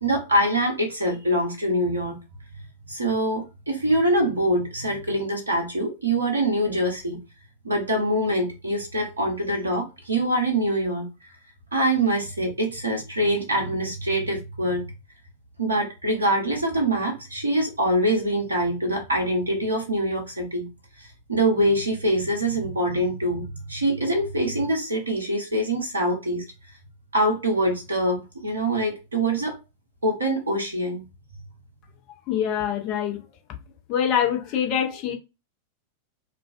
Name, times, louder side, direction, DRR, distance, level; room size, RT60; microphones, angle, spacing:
voice 1, 0.0-2.2 2.9-7.2 7.6-11.1 11.7-14.9 15.6-20.7 21.0-23.4 23.7-26.4 27.1-29.6 30.0-31.0, right 1 dB, 75° right, 0.7 m, -24 dB
voice 2, 32.3-33.2 33.9-35.1, left 9 dB, 40° left, 0.7 m, -24 dB
2.4 x 2.2 x 2.4 m
figure-of-eight pair, 90°, 0 cm